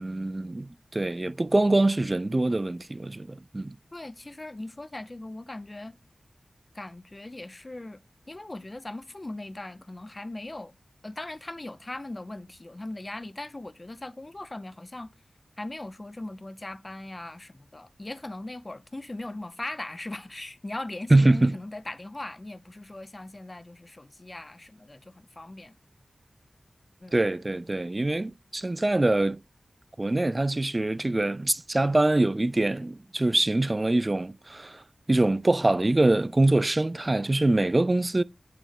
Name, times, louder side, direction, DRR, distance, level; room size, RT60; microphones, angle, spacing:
voice 1, 0.0-3.8 21.1-21.5 27.1-29.4 30.0-34.8 35.1-38.2, right 2 dB, 35° right, 0.3 m, -24 dB
voice 2, 3.9-6.0 6.7-8.0 8.3-10.7 11.0-15.1 15.6-25.7 27.0-27.2, left 2 dB, 35° left, 0.5 m, -39 dB
8.5 x 3.3 x 3.5 m
cardioid pair, 50°, 0 cm